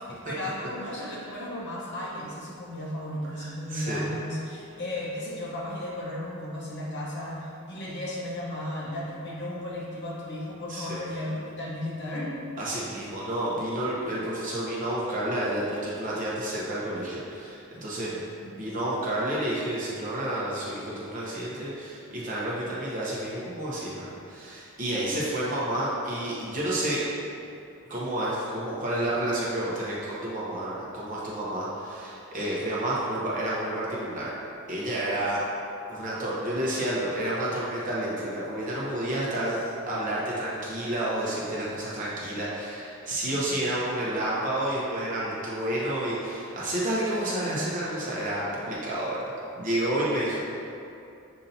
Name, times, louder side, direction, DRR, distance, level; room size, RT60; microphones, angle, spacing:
voice 1, 0.1-12.3 18.4-18.7 43.3-43.7 47.1-47.7, left 1 dB, 55° left, -5 dB, 0.9 m, -35 dB
voice 2, 3.3-4.2 10.7-11.0 12.6-18.2 18.5-27.0 27.9-34.4 34.7-35.4 35.9-39.6 39.9-49.2 49.6-50.4, right 1 dB, 35° right, -7 dB, 0.8 m, -30 dB
6.5 x 2.8 x 2.7 m, 2.6 s
head